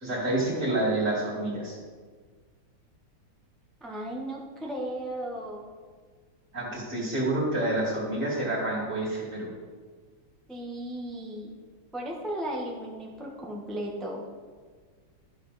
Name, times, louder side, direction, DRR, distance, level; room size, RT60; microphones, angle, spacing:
voice 1, 0.0-1.8 6.5-9.5, right 1 dB, 35° right, -4 dB, 2.7 m, -28 dB
voice 2, 3.8-5.7 10.5-11.5 11.9-14.3, right 1 dB, ahead, -2 dB, 0.4 m, -35 dB
12.5 x 6.0 x 4.1 m, 1.5 s
omnidirectional pair, 2.3 m